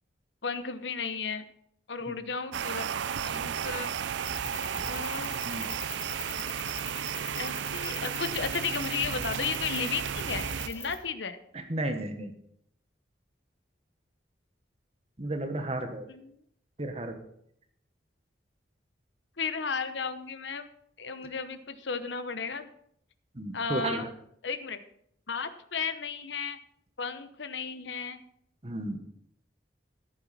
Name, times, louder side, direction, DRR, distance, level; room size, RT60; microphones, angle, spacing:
voice 1, 0.4-1.4 1.9-2.9 3.2-4.0 4.9-5.3 7.4-11.4 16.1-16.4 19.4-20.7 21.0-22.7 23.5-24.1 24.4-24.8 25.3-26.6 27.0-28.2, left 5 dB, 75° left, 11 dB, 0.9 m, -34 dB
sound 1, 2.5-10.7, right 8 dB, 75° right, 0.4 m, -34 dB
sound 2, 4.2-11.0, left 3 dB, 15° left, 1.2 m, -41 dB
voice 2, 5.2-5.7 11.5-12.3 15.2-16.0 16.8-17.2 23.3-24.1 28.6-29.0, right 1 dB, 35° right, 6 dB, 1.3 m, -33 dB
13.5 x 10.5 x 4.2 m, 0.70 s
head